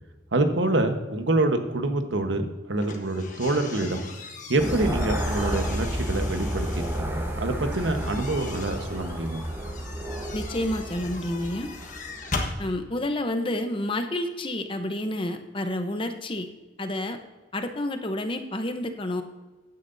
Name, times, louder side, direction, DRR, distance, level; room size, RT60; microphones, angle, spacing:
voice 1, 0.3-4.0 4.5-9.4, right 2 dB, 85° right, 6 dB, 1.2 m, -26 dB
sound 1, 2.8-7.0 7.7-12.6, left 3 dB, 45° left, 1.4 m, -39 dB
sound 2, 4.6-12.4, right 1 dB, 15° right, 1.2 m, -31 dB
voice 2, 10.3-11.7 12.6-16.5 16.8-17.2 17.5-19.2, left 1 dB, 30° left, 7 dB, 0.8 m, -29 dB
15.0 x 9.5 x 2.7 m, 1.2 s
head